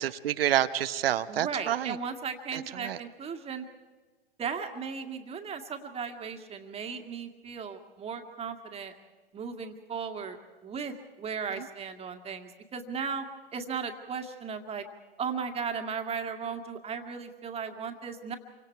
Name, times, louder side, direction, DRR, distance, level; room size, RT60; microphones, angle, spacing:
voice 1, 0.0-2.0 2.5-3.0 11.6-11.7, right 11 dB, 65° right, 13 dB, 1.0 m, -28 dB
voice 2, 1.3-3.7 4.4-8.9 9.3-13.2 13.5-14.8 15.2-18.4, right 6 dB, 20° right, 5 dB, 2.0 m, -36 dB
27.5 x 24.5 x 4.6 m, 1.4 s
hypercardioid pair, 110°, 31 cm